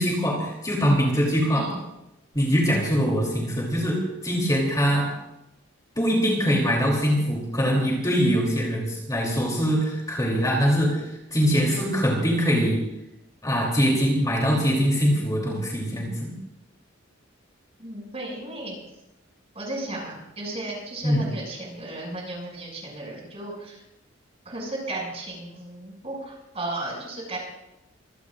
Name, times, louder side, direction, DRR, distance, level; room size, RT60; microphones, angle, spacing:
voice 1, 0.0-1.7 2.3-5.1 5.9-12.8 13.4-16.3 21.0-21.3, equal, 20° left, -2 dB, 3.2 m, -23 dB
voice 2, 17.8-18.8 19.5-23.8 24.5-27.4, right 2 dB, 30° right, -2 dB, 7.0 m, -34 dB
25.5 x 18.0 x 2.6 m, 0.91 s
head